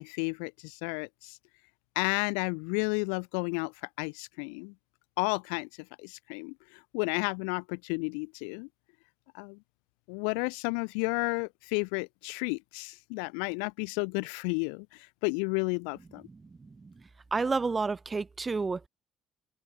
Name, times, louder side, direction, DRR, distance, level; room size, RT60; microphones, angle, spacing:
voice 1, 0.0-1.4 1.9-4.7 5.2-5.7 6.0-8.7 9.3-9.6 10.1-16.2, left 40 dB or more, 70° left, 3.4 m, -32 dB
voice 2, 16.3-16.9 17.3-18.9, right 4 dB, 25° right, 4.4 m, -31 dB
figure-of-eight pair, 55°, 0 cm